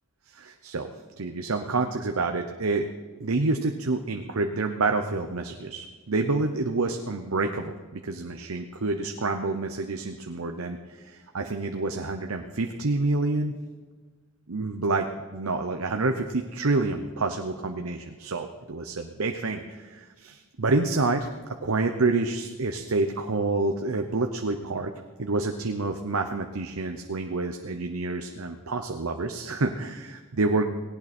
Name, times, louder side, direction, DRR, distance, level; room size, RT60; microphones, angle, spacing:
voice 1, 0.3-2.9 3.2-13.6 14.5-21.3 21.6-24.9 25.2-30.7, right 3 dB, 85° right, 5 dB, 0.9 m, -28 dB
18.5 x 17.5 x 4.4 m, 1.4 s
head